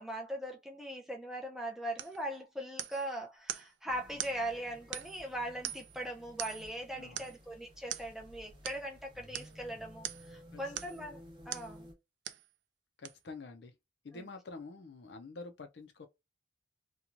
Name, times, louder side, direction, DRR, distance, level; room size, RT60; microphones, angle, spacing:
voice 1, 0.0-11.2 11.5-11.9 14.1-14.2, right 1 dB, ahead, 0.5 m, -40 dB
sound 1, 2.0-2.2 2.8-3.1 3.5-3.7 4.2-4.4 4.9-5.3 5.6-6.0 6.4-6.7 7.2-7.4 7.9-8.1 8.6-8.8 9.3-9.5 10.0-10.3 10.7-11.0 11.5-11.7 12.2-12.5 13.0-13.1, right 12 dB, 70° right, 0.3 m, -41 dB
sound 2, 3.9-11.9, equal, 25° right, 0.8 m, -55 dB
voice 2, 6.9-7.3 10.5-10.9 13.0-13.7 14.0-16.1, left 3 dB, 60° left, 0.5 m, -48 dB
3.0 x 2.3 x 2.5 m
head